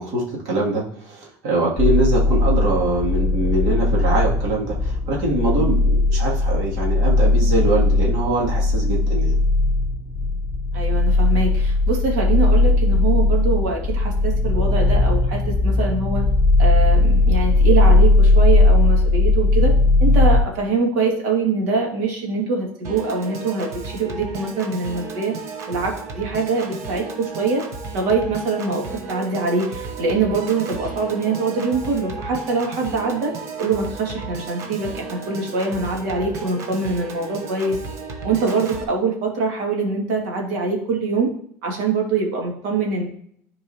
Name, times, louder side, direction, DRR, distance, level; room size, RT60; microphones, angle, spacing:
voice 1, 0.0-9.4, right 2 dB, 70° right, -4 dB, 2.6 m, -23 dB
sound 1, 1.8-20.4, left 2 dB, 5° left, 0.9 m, -18 dB
voice 2, 10.7-16.2 16.6-19.7 20.0-25.3 25.7-27.7 27.9-33.3 33.6-37.8 38.2-41.3 41.6-43.1, right 4 dB, 90° right, 0 dB, 2.2 m, -23 dB
Piano / Organ, 22.8-38.8, right 4 dB, 45° right, 1.1 m, -34 dB
13.0 x 4.6 x 2.9 m, 0.64 s
cardioid pair, 150°, 7 cm